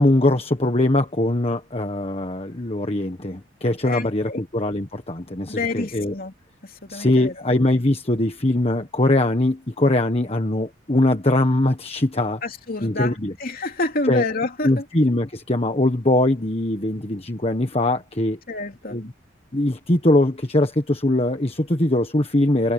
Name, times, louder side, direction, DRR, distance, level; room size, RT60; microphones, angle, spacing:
voice 1, 0.0-6.1 6.9-12.4 12.8-13.3 14.1-14.2 14.6-18.4 18.9-19.1 19.5-22.7, left 1 dB, 30° left, 1.4 m, -21 dB
voice 2, 3.8-4.4 5.5-6.3 6.8-7.3 12.4-14.8 18.5-19.0, left 2 dB, 45° left, 3.1 m, -28 dB
head